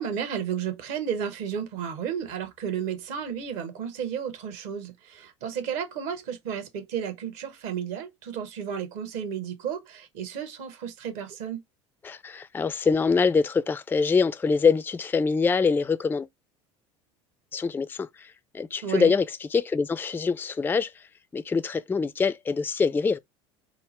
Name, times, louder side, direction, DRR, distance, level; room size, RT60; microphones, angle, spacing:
voice 1, 0.0-11.6 18.8-19.1, right 8 dB, 60° right, 1.2 m, -33 dB
voice 2, 12.0-16.3 17.5-20.9 21.3-23.2, left 5 dB, 15° left, 0.4 m, -24 dB
3.6 x 2.1 x 4.2 m
hypercardioid pair, 70°, 16 cm